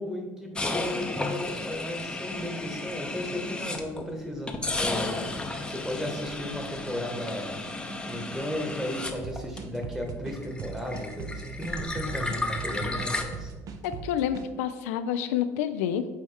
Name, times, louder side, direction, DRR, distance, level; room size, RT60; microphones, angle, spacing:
voice 1, 0.0-5.3 5.6-7.6 8.1-13.5, left 1 dB, 5° right, 2 dB, 1.4 m, -35 dB
sound 1, 0.6-4.1 4.5-10.0 10.3-13.2, left 2 dB, 10° left, 0.7 m, -33 dB
sound 2, 9.2-14.5, right 6 dB, 50° right, 0.7 m, -39 dB
voice 2, 13.8-16.1, left 9 dB, 90° left, 10 dB, 0.3 m, -28 dB
8.7 x 3.2 x 3.5 m, 1.2 s
supercardioid pair, 85°, 7 cm